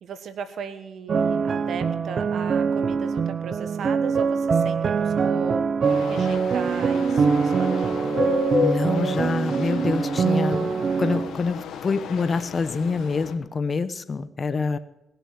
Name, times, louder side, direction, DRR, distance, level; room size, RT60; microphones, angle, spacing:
voice 1, 0.0-5.6 6.0-8.1, right 6 dB, 70° right, 10 dB, 1.4 m, -36 dB
sound 1, 1.1-11.4, right 5 dB, 50° right, 0.6 m, -23 dB
sound 2, 5.8-13.3, left 5 dB, 80° left, 1.4 m, -32 dB
voice 2, 8.6-10.7 11.0-14.8, left 4 dB, 40° left, 13 dB, 0.9 m, -26 dB
18.0 x 6.9 x 7.4 m, 0.94 s
cardioid pair, 95°, 0 cm